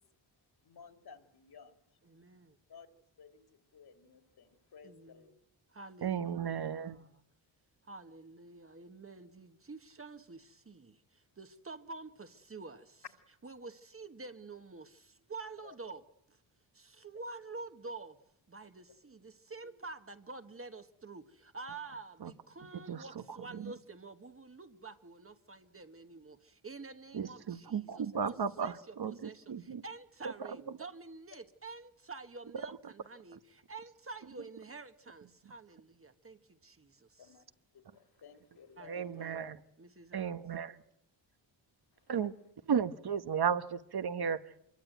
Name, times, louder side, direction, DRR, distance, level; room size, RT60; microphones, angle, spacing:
voice 1, 0.6-1.7 2.7-2.9 3.2-3.4 3.7-5.3 15.6-15.7 28.1-28.3 37.2-37.4 37.7-39.1 41.9-42.1, left 6 dB, 55° left, 3.1 m, -55 dB
voice 2, 2.0-2.6 4.8-5.3 5.7-7.1 7.8-13.0 13.4-16.4 16.7-18.2 18.5-37.4 38.8-40.4, right 3 dB, 30° right, 1.4 m, -49 dB
voice 3, 6.0-7.0 22.2-22.3 22.7-23.7 27.1-29.8 30.2-30.5 38.8-39.6 40.1-40.8 42.1-42.3 42.7-44.5, right 7 dB, 55° right, 1.2 m, -35 dB
27.0 x 22.0 x 9.3 m
wide cardioid pair, 150°, 46 cm